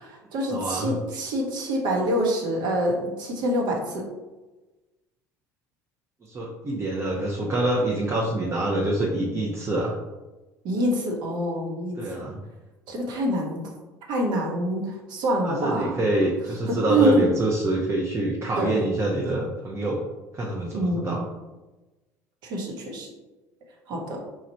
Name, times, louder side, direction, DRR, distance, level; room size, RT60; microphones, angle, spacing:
voice 1, 0.0-4.1 10.6-12.1 12.9-13.7 14.1-16.0 16.7-17.3 18.6-18.8 20.7-21.2 22.4-23.1 23.9-24.2, right 1 dB, 55° right, 0 dB, 1.0 m, -26 dB
voice 2, 0.5-0.9 6.2-9.9 12.0-12.4 15.4-20.0 20.3-21.2, right 1 dB, 30° right, -3 dB, 0.7 m, -26 dB
3.1 x 2.4 x 4.2 m, 1.1 s
figure-of-eight pair, 65°, 9 cm